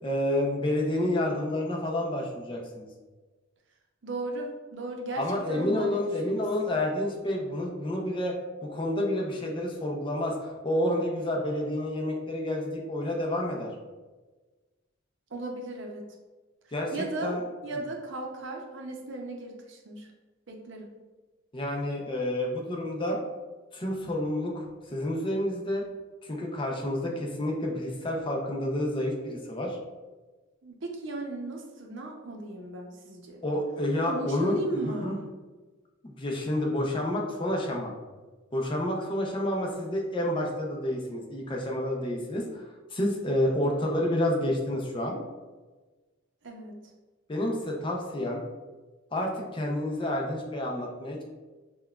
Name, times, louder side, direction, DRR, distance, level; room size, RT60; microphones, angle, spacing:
voice 1, 0.0-2.9 5.2-8.4 8.6-13.7 16.7-16.9 17.2-17.4 21.5-23.2 23.7-24.7 24.9-25.8 26.2-29.8 33.4-35.2 36.0-37.9 38.5-42.6 42.9-45.2 47.3-48.4 49.1-51.2, left 1 dB, 25° left, 0 dB, 0.5 m, -29 dB
voice 2, 4.0-6.1 15.3-16.1 16.9-17.4 17.6-20.1 20.5-20.9 30.6-33.4 34.0-35.2 46.4-46.8, right 2 dB, 65° right, 1 dB, 0.6 m, -36 dB
5.6 x 2.2 x 2.3 m, 1.3 s
head